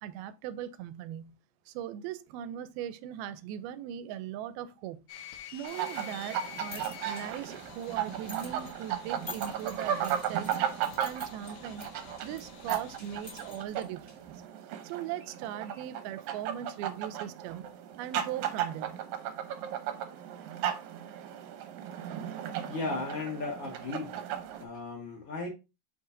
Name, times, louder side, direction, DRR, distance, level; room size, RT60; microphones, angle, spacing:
voice 1, 0.0-1.4 1.7-5.1 5.5-10.6 11.0-11.9 12.2-14.4 14.8-19.0, right 10 dB, 90° right, 2.5 m, -39 dB
sound 1, 5.1-13.6, left 10 dB, 75° left, 2.3 m, -49 dB
sound 2, 5.6-24.6, right 9 dB, 75° right, 2.4 m, -36 dB
sound 3, 6.4-14.4, left 3 dB, 15° left, 1.7 m, -50 dB
voice 2, 22.7-24.2 24.6-25.5, left 3 dB, 50° left, 2.0 m, -36 dB
7.1 x 5.6 x 2.6 m
omnidirectional pair, 4.3 m